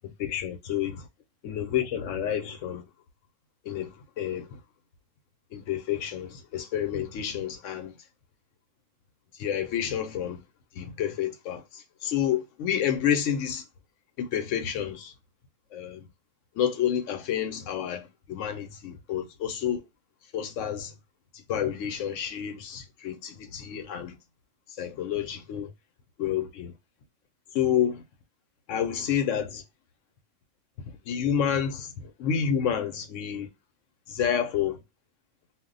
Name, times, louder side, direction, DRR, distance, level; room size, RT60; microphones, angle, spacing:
voice 1, 0.2-0.9 1.4-2.8 3.7-4.6 5.5-8.0 9.4-10.4 10.8-13.6 14.2-15.1 15.7-16.1 16.6-19.8 20.3-20.9 21.5-24.2 24.8-25.7 26.2-26.7 27.5-28.0 28.7-29.6 31.1-33.5 34.1-34.8, left 9 dB, 85° left, 0.9 m, -29 dB
2.4 x 2.1 x 3.7 m
omnidirectional pair, 1.3 m